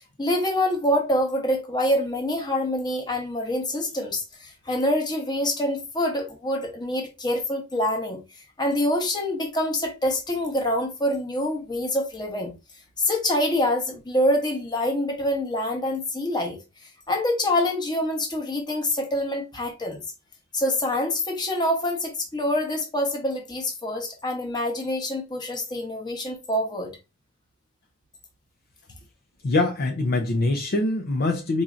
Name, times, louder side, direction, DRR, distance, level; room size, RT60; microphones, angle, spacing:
voice 1, 0.2-8.2 8.6-12.5 13.0-16.6 17.1-20.0 20.5-27.0, left 1 dB, 20° left, 0.9 m, -26 dB
voice 2, 29.4-31.6, left 2 dB, 45° left, 0.5 m, -23 dB
4.3 x 2.6 x 2.4 m
head